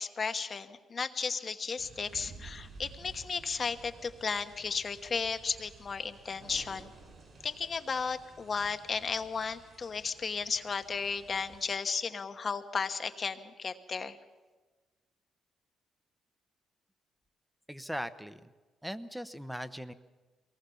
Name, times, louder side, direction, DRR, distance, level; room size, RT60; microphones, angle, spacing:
voice 1, 0.0-6.9 7.4-14.2, left 5 dB, 40° left, 8 dB, 1.1 m, -34 dB
sound 1, 1.8-11.7, right 3 dB, 45° right, 6.5 m, -54 dB
Thunder, 6.1-8.3, right 3 dB, 70° right, 2.9 m, -56 dB
voice 2, 17.7-18.5 18.8-19.9, equal, ahead, 13 dB, 1.0 m, -39 dB
23.0 x 18.5 x 7.1 m, 1.3 s
cardioid pair, 90°, 0 cm